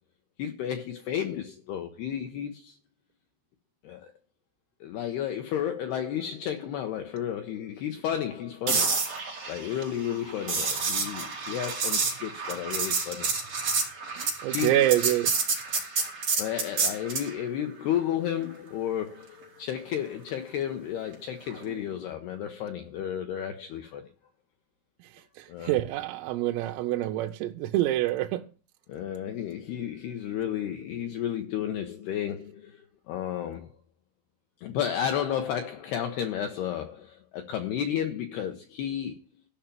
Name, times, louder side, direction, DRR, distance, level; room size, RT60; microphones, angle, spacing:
voice 1, 0.4-2.8 3.8-4.1 4.8-9.1 9.5-13.3 14.5-14.8 16.4-24.1 25.5-25.8 28.9-33.8 34.6-39.2, left 10 dB, 85° left, 2.3 m, -32 dB
sound 1, 8.7-17.3 21.5-21.7, right 4 dB, 35° right, 3.9 m, -29 dB
voice 2, 14.2-15.3 25.4-28.5, right 14 dB, 85° right, 3.4 m, -26 dB
14.0 x 5.8 x 9.0 m
omnidirectional pair, 5.9 m